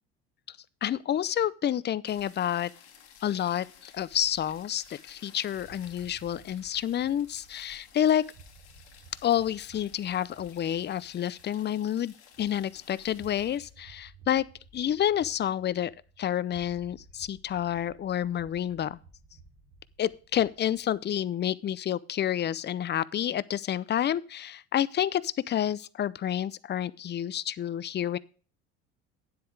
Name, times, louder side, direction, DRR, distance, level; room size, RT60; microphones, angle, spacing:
voice 1, 0.8-2.7 3.2-8.2 9.2-14.5 14.7-15.9 16.2-19.0 20.0-28.2, left 10 dB, 30° left, 0.6 m, -29 dB
sound 1, 2.1-13.7, left 8 dB, 90° left, 2.4 m, -55 dB
sound 2, 5.5-21.4, right 3 dB, 75° right, 3.2 m, -56 dB
9.6 x 8.1 x 4.8 m
supercardioid pair, 85°, 33 cm